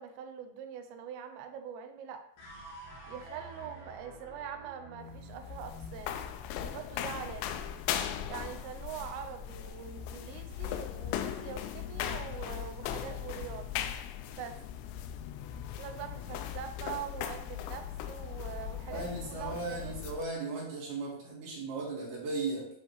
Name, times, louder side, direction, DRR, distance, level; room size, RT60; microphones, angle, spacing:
voice 1, 0.0-2.2 3.1-6.2 6.6-7.5 8.3-13.7 14.3-14.6 15.8-19.9, right 8 dB, 80° right, 6 dB, 2.9 m, -43 dB
sound 1, 2.4-8.7, right 1 dB, 70° left, 3.6 m, -51 dB
sound 2, 5.0-20.3, left 10 dB, 85° left, 2.8 m, -38 dB
voice 2, 18.9-22.7, right 3 dB, 65° right, -4 dB, 3.5 m, -36 dB
9.8 x 3.5 x 3.0 m, 0.67 s
omnidirectional pair, 5.2 m